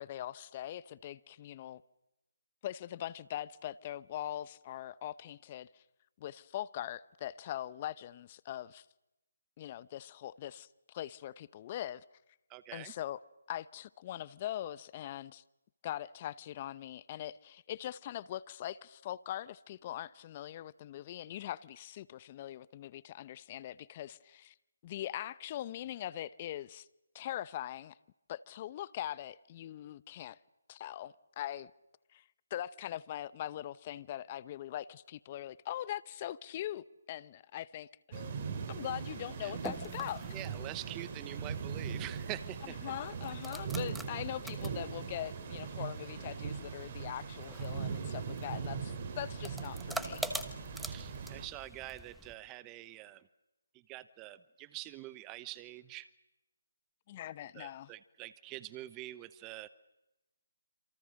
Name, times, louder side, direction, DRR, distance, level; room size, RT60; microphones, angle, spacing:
voice 1, 0.0-1.8 2.6-5.8 6.2-8.9 9.6-12.0 12.7-13.2 13.5-15.4 15.8-24.5 24.8-26.9 27.1-28.0 28.3-30.4 30.7-31.7 32.1-32.2 32.5-38.3 38.7-40.3 42.6-50.4 57.1-57.9, left 12 dB, 30° left, 0.9 m, -42 dB
voice 2, 12.5-12.9 39.4-39.5 40.3-42.7 50.8-53.2 53.9-56.1 57.5-59.7, right 16 dB, 20° right, 0.9 m, -45 dB
sound 1, 38.1-51.5, right 6 dB, 35° right, 3.9 m, -40 dB
sound 2, 39.3-52.3, right 1 dB, ahead, 1.3 m, -46 dB
27.5 x 27.5 x 6.5 m
figure-of-eight pair, 155°, 0 cm